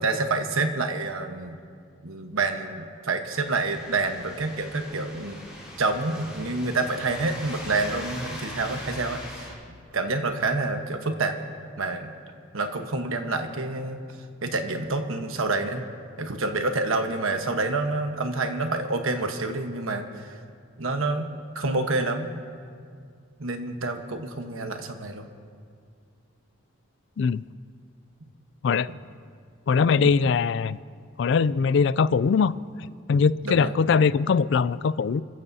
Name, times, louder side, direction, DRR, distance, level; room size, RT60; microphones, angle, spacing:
voice 1, 0.0-1.6 2.0-5.4 5.8-9.5 9.9-11.4 11.8-12.1 12.5-14.0 14.4-15.8 16.2-20.4 20.8-21.3 21.5-22.4 23.4-25.3 28.9-29.0 30.0-30.3 33.4-33.8, right 3 dB, 80° right, 6 dB, 1.2 m, -28 dB
sound 1, 3.4-9.5, left 1 dB, 5° right, 3.9 m, -41 dB
voice 2, 29.7-30.8 31.2-32.5 33.1-35.2, left 5 dB, 60° left, 18 dB, 0.3 m, -21 dB
29.5 x 14.5 x 2.8 m, 2.2 s
head